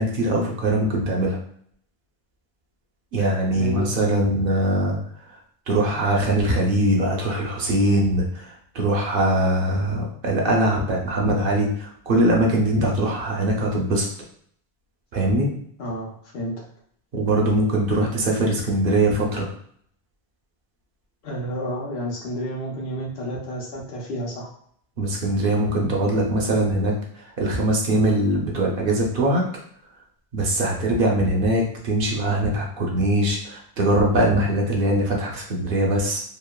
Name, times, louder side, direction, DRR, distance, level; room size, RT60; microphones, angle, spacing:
voice 1, 0.0-1.4 3.1-5.0 5.7-14.1 15.1-15.5 17.1-19.5 25.0-29.5 30.3-36.2, right 1 dB, 65° right, -1 dB, 0.7 m, -22 dB
voice 2, 3.5-3.9 15.8-16.6 21.2-24.5, equal, 75° left, -3 dB, 1.0 m, -30 dB
3.0 x 2.0 x 2.2 m, 0.64 s
omnidirectional pair, 1.1 m